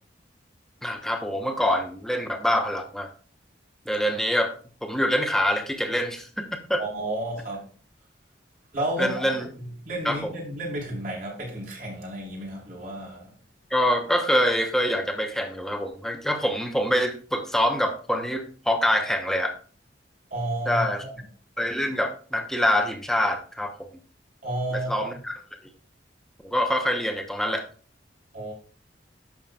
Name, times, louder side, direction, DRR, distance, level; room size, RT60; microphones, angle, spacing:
voice 1, 0.8-3.1 3.9-4.5 4.8-6.8 9.0-9.5 10.0-10.3 13.7-19.5 20.7-21.0 21.6-23.9 24.7-25.4 26.4-27.6, equal, ahead, 1.0 m, -25 dB
voice 2, 6.8-7.7 8.7-9.3 9.8-13.3 20.3-21.1 24.4-25.1 28.3-28.5, right 1 dB, 50° right, 4.1 m, -31 dB
11.5 x 7.1 x 2.4 m
head